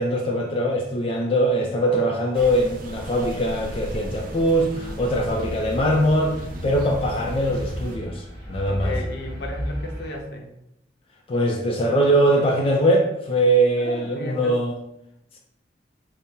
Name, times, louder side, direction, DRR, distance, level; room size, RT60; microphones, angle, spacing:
voice 1, 0.0-8.9 11.3-14.7, right 1 dB, 30° left, -1 dB, 0.4 m, -22 dB
sound 1, 2.3-8.0, right 1 dB, 50° right, 0.5 m, -35 dB
sound 2, 6.2-10.2, equal, 25° right, 1.5 m, -34 dB
voice 2, 8.3-10.5 13.8-14.6, left 1 dB, 65° left, 1 dB, 0.7 m, -34 dB
4.0 x 2.1 x 3.6 m, 0.78 s
head